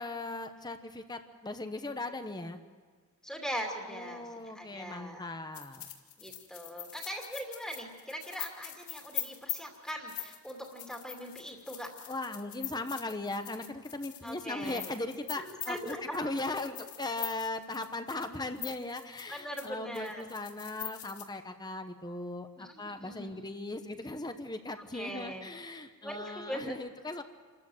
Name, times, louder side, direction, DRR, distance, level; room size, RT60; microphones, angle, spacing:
voice 1, 0.0-2.6 3.9-5.9 12.1-27.2, left 2 dB, 20° left, 8 dB, 1.1 m, -38 dB
voice 2, 3.2-5.3 6.2-11.9 14.2-14.8 15.4-16.4 19.3-20.3 22.6-23.4 24.9-25.5 26.0-26.8, equal, 5° left, 0 dB, 2.5 m, -41 dB
sound 1, 5.5-19.7 19.9-21.3, left 13 dB, 85° left, 2.4 m, -42 dB
28.0 x 14.0 x 7.8 m, 1.5 s
head